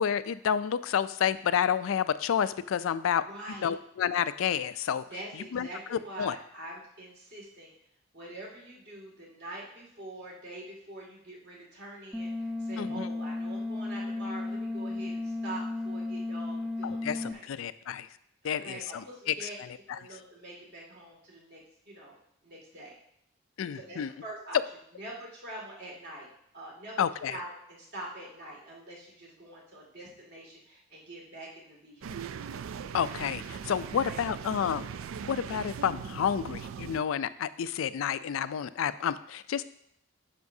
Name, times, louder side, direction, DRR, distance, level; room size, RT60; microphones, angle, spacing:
voice 1, 0.0-3.2 3.6-5.0 5.3-6.4 12.8-13.1 16.8-18.1 18.4-19.5 19.9-20.0 23.6-24.1 27.0-27.4 32.9-34.9 35.3-39.6, left 8 dB, 85° left, 14 dB, 0.3 m, -30 dB
voice 2, 3.2-3.7 5.1-7.7 8.1-17.5 18.4-19.6 19.9-22.1 22.4-22.9 23.7-24.6 25.0-26.3 26.5-32.1 34.0-34.2, right 1 dB, 55° right, -3 dB, 2.2 m, -45 dB
sound 1, 12.1-17.3, left 2 dB, ahead, 0.3 m, -34 dB
sound 2, 32.0-37.0, right 7 dB, 85° right, 0.3 m, -40 dB
9.5 x 6.1 x 2.7 m, 0.71 s
head